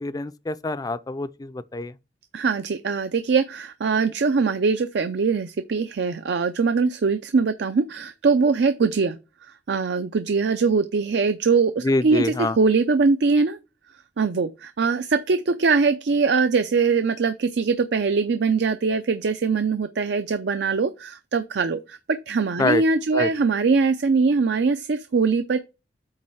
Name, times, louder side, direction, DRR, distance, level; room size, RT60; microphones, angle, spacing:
voice 1, 0.0-1.9 11.8-12.6 22.6-22.8 23.1-23.3, left 2 dB, 20° left, 0.4 m, -25 dB
voice 2, 2.3-9.2 9.4-13.6 14.2-25.6, right 4 dB, 65° right, 0.5 m, -22 dB
8.7 x 3.1 x 6.2 m
head